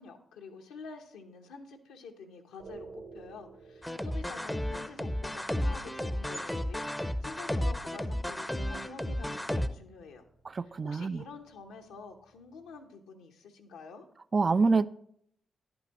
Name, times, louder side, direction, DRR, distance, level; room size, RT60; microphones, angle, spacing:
voice 1, 0.0-10.2 10.6-14.1, left 4 dB, 85° left, 3 dB, 0.8 m, -48 dB
sound 1, 2.6-12.8, right 4 dB, 75° right, 1.8 m, -56 dB
sound 2, 3.8-9.7, left 1 dB, 10° left, 0.6 m, -33 dB
voice 2, 10.5-11.2 14.3-14.9, right 4 dB, 45° right, 17 dB, 0.3 m, -26 dB
10.5 x 8.8 x 2.9 m, 0.69 s
hypercardioid pair, 40°, 0 cm